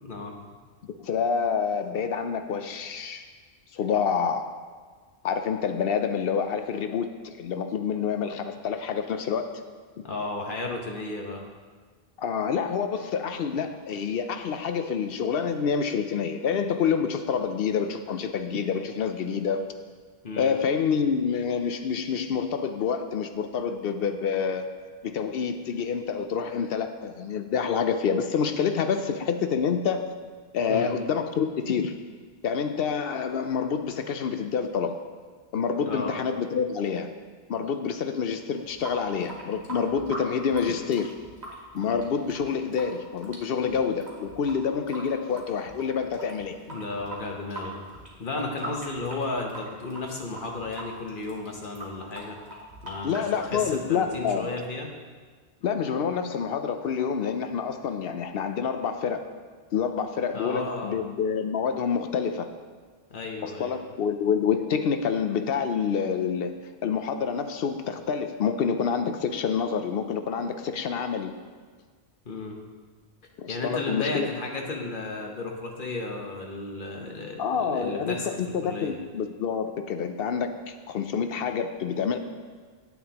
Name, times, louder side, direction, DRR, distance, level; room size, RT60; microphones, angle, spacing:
voice 1, 1.0-3.3 3.7-4.5 5.2-9.5 12.2-19.7 20.4-24.7 25.0-30.1 30.5-31.9 32.4-35.0 35.5-37.1 37.5-41.1 41.7-46.6 53.0-54.5 55.6-59.2 59.7-62.5 63.4-66.5 66.8-71.3 73.4-74.3 77.4-82.2, left 6 dB, 70° left, 8 dB, 0.7 m, -27 dB
voice 2, 10.0-11.4 20.2-20.5 30.7-30.9 35.8-36.1 46.7-47.8 48.2-52.4 52.8-54.9 60.3-61.0 63.1-63.8 72.2-72.6 73.5-78.4 78.6-79.0, left 3 dB, 55° left, 1 dB, 1.2 m, -33 dB
Water tap faucet / Sink (filling or washing) / Drip, 38.6-54.5, right 1 dB, 40° right, 1.6 m, -42 dB
9.4 x 9.2 x 2.9 m, 1.5 s
omnidirectional pair, 1.1 m